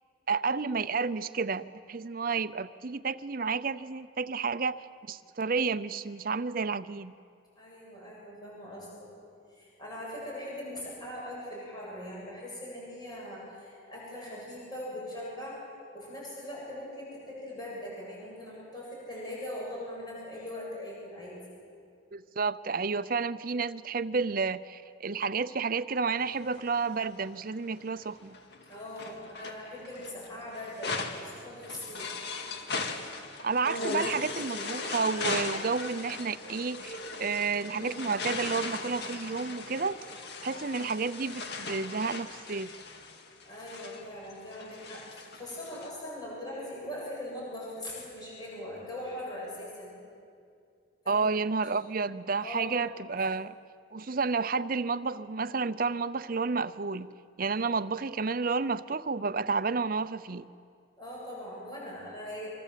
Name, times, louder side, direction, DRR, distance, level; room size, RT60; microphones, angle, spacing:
voice 1, 0.3-7.1 22.1-28.4 33.4-40.0 40.4-42.7 51.1-53.5 53.9-57.1 57.4-60.5, right 4 dB, 45° right, 14 dB, 0.6 m, -31 dB
voice 2, 7.6-9.1 9.5-15.6 15.9-21.4 28.7-32.1 33.9-34.1 43.4-50.0 51.0-52.0 52.4-52.8 57.6-57.7 61.0-62.5, left 1 dB, 20° left, -5 dB, 8.0 m, -41 dB
sound 1, 26.2-27.3 28.0-45.9, left 3 dB, 55° left, 2.1 m, -38 dB
25.0 x 25.0 x 7.5 m, 2.4 s
head